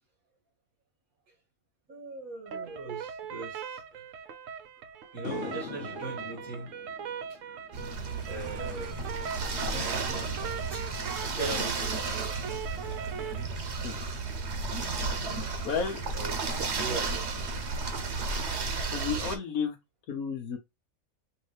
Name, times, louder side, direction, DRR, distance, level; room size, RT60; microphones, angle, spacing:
voice 1, 1.9-4.1 5.1-6.7 7.3-7.6 8.3-8.9 9.7-10.4 10.7-10.9 11.3-12.0 16.1-17.5, right 3 dB, 90° right, 2.4 m, -40 dB
sound 1, 2.5-13.5, right 7 dB, 70° right, 1.0 m, -40 dB
sound 2, 5.2-11.7, left 7 dB, 60° left, 0.8 m, -45 dB
sound 3, 7.7-19.4, right 4 dB, 55° right, 1.3 m, -33 dB
voice 2, 15.6-16.0 18.9-19.8 20.1-20.6, left 6 dB, 85° left, 1.3 m, -31 dB
5.4 x 2.8 x 3.2 m
omnidirectional pair, 1.4 m